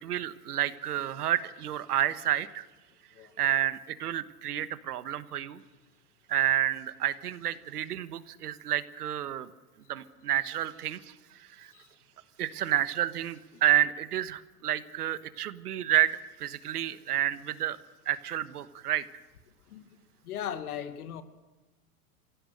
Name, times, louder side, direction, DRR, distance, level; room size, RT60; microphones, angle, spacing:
voice 1, 0.0-2.7 3.4-5.6 6.3-9.5 9.9-11.7 12.4-17.8 18.0-19.0, right 12 dB, 85° right, 1.3 m, -30 dB
voice 2, 20.2-21.2, left 9 dB, 75° left, 1.9 m, -38 dB
24.5 x 16.5 x 6.5 m
hypercardioid pair, 125°, 45 cm